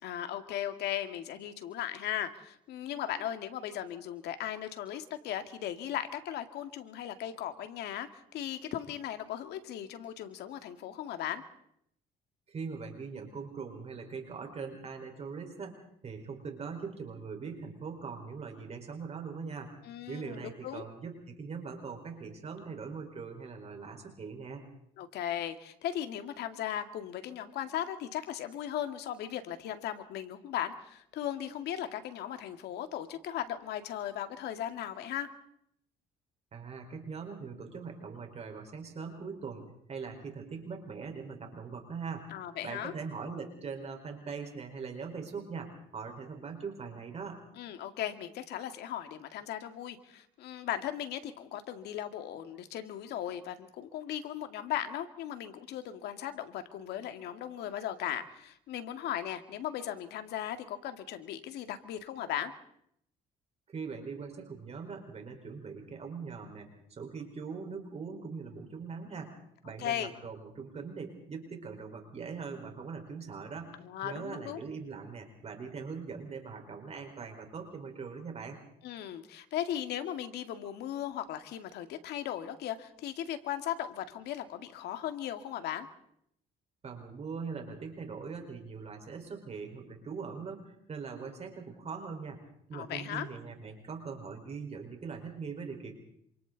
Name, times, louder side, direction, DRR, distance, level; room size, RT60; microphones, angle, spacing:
voice 1, 0.0-11.4 19.8-20.9 25.0-35.3 42.3-42.9 47.6-62.5 69.8-70.1 73.8-74.6 78.8-85.9 92.7-93.3, left 11 dB, 75° left, 8 dB, 2.1 m, -37 dB
voice 2, 12.5-19.7 20.1-24.6 36.5-42.3 42.6-47.4 63.7-69.3 69.6-73.7 74.0-78.6 86.8-92.4 92.7-95.9, right 5 dB, 40° right, 3 dB, 4.7 m, -41 dB
27.5 x 26.5 x 4.1 m, 0.71 s
cardioid pair, 110°, 17 cm